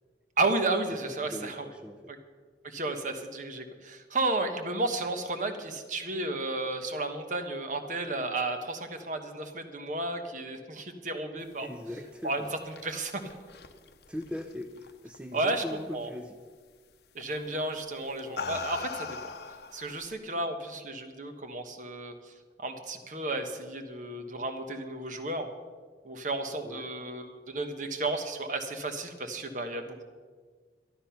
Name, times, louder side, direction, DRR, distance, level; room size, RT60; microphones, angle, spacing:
voice 1, 0.4-1.7 2.1-2.2 2.6-11.7 12.2-12.4 12.8-13.2 15.3-16.1 17.1-19.3 19.7-22.1 22.6-25.5 26.0-30.0, right 2 dB, 45° right, 6 dB, 1.2 m, -33 dB
voice 2, 0.9-2.1 11.6-12.5 14.1-16.4 26.6-26.9, left 1 dB, 5° right, 4 dB, 0.5 m, -40 dB
sound 1, 12.3-15.2 15.5-15.9 17.2-17.4 18.0-20.1, left 4 dB, 65° left, 0.8 m, -40 dB
12.0 x 12.0 x 5.8 m, 1.5 s
head